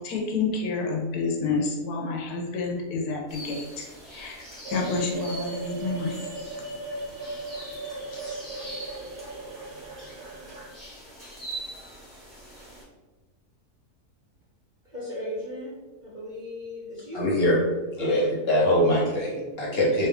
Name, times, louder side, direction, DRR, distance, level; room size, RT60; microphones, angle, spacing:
voice 1, 0.0-4.4 4.7-6.2 8.1-8.2, left 4 dB, 80° left, 1 dB, 1.2 m, -29 dB
sound 1, 3.3-12.8, right 1 dB, ahead, 1.2 m, -43 dB
sound 2, 4.6-10.7, right 2 dB, 85° right, 1.2 m, -37 dB
voice 2, 14.8-15.8 16.0-17.2 18.0-18.1, left 1 dB, 35° right, -7 dB, 0.8 m, -36 dB
voice 3, 17.1-17.6 17.9-20.1, equal, 45° left, -4 dB, 1.2 m, -23 dB
3.5 x 2.9 x 3.4 m, 1.2 s
omnidirectional pair, 1.6 m